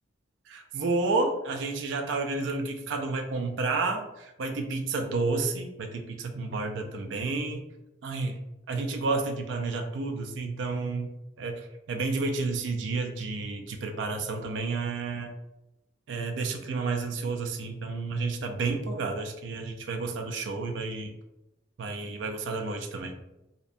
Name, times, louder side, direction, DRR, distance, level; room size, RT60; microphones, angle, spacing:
voice 1, 0.5-7.6 8.0-8.4 8.7-11.1 11.4-15.3 16.1-21.1 21.8-23.1, right 3 dB, 70° right, 4 dB, 0.4 m, -31 dB
2.5 x 2.0 x 2.5 m, 0.93 s
head